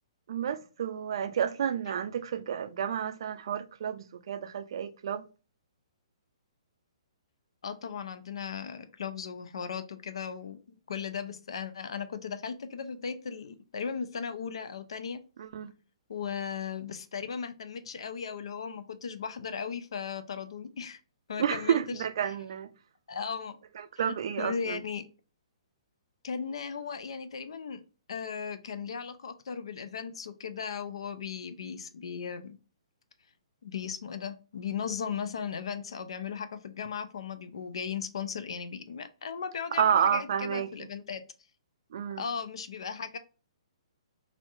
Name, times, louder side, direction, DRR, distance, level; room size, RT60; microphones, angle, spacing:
voice 1, 0.3-5.2 15.4-15.7 21.4-22.7 23.7-24.8 39.8-40.7 41.9-42.2, right 8 dB, 55° right, 0.4 m, -30 dB
voice 2, 7.6-15.2 16.1-21.0 21.3-22.3 23.1-23.6 24.0-25.0 26.2-27.8 28.1-32.6 33.6-41.2 42.2-43.2, left 6 dB, 65° left, 0.5 m, -37 dB
3.2 x 2.7 x 2.5 m
figure-of-eight pair, 125°, 3 cm